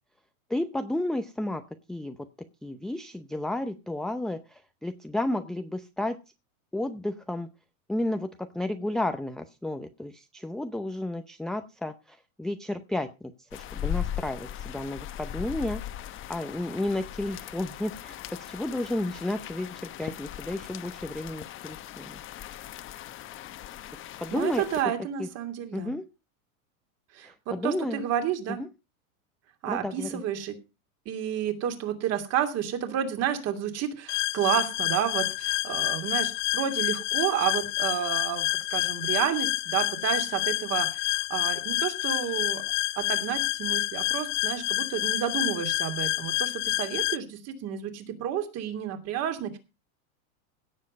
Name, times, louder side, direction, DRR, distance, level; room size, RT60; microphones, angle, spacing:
voice 1, 0.5-1.6 1.9-2.2 2.6-6.2 6.7-7.5 7.9-15.8 16.3-22.2 24.2-24.6 25.2-25.3 25.7-26.0 27.2-28.0 28.5-28.7 29.7-30.2, left 1 dB, ahead, 6 dB, 0.6 m, -32 dB
sound 1, 13.5-24.8, left 11 dB, 30° left, 1.2 m, -38 dB
voice 2, 24.3-25.9 27.1-28.6 29.6-30.6 31.0-42.6 43.0-49.6, right 10 dB, 35° right, 7 dB, 2.8 m, -30 dB
sound 2, 34.1-47.2, left 19 dB, 50° left, 0.9 m, -28 dB
17.0 x 7.5 x 5.2 m, 0.29 s
supercardioid pair, 140°, 43 cm